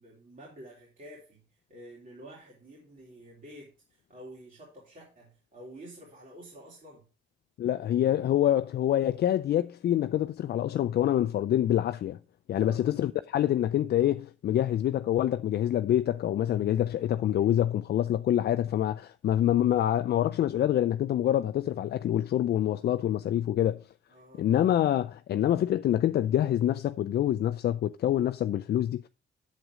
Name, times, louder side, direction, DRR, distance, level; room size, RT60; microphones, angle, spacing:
voice 1, 0.0-7.1 12.5-12.8 17.3-17.5 24.1-24.5, right 1 dB, 40° right, 3.3 m, -49 dB
voice 2, 7.6-12.2 12.5-23.8 24.4-29.1, left 11 dB, 55° left, 0.4 m, -26 dB
8.0 x 7.5 x 4.9 m
cardioid pair, 90°, 20 cm